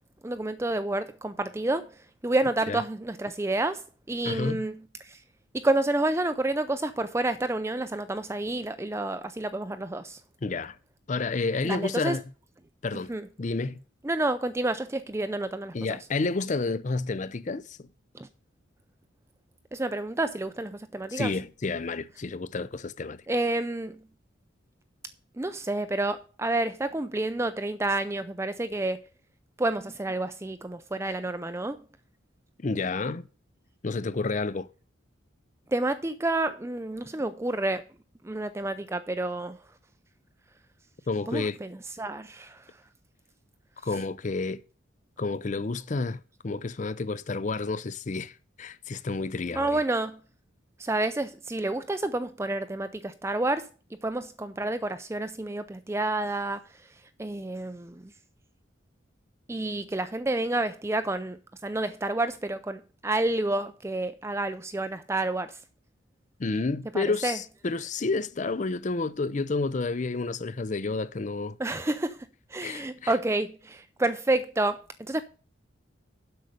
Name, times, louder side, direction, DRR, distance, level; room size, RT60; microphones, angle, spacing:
voice 1, 0.2-1.9 2.2-5.2 5.5-10.2 11.6-12.2 13.1-13.3 14.0-16.0 18.1-18.3 19.7-21.3 23.3-24.0 25.4-29.0 29.6-31.8 35.7-37.8 38.2-39.6 41.3-42.6 49.6-50.2 50.8-53.7 54.0-56.6 57.2-58.0 59.5-65.6 66.9-67.4 71.6-72.2 72.5-75.2, right 2 dB, 15° right, 0.4 m, -29 dB
voice 2, 4.2-4.6 10.4-10.8 11.1-12.2 12.8-13.1 13.4-13.8 15.7-17.9 21.1-23.2 32.6-33.3 33.8-34.7 41.1-41.6 43.8-44.6 45.2-49.8 66.4-71.6 72.6-73.1, left 3 dB, 40° left, 0.5 m, -30 dB
7.9 x 6.5 x 6.5 m
head